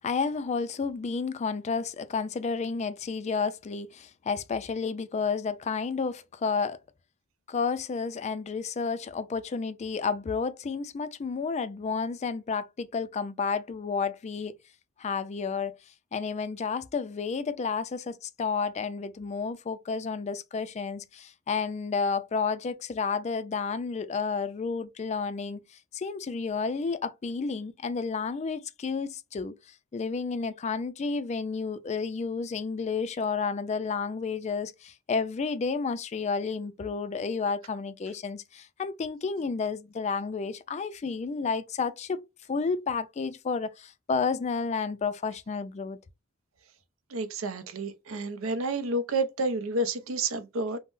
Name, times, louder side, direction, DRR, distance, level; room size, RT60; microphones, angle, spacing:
voice 1, 0.0-6.8 7.5-14.6 15.0-15.7 16.1-25.6 25.9-29.5 29.9-42.2 42.5-46.0, left 5 dB, 35° left, 0.3 m, -31 dB
voice 2, 47.1-50.8, right 2 dB, 75° right, 0.6 m, -30 dB
3.6 x 2.0 x 2.4 m
head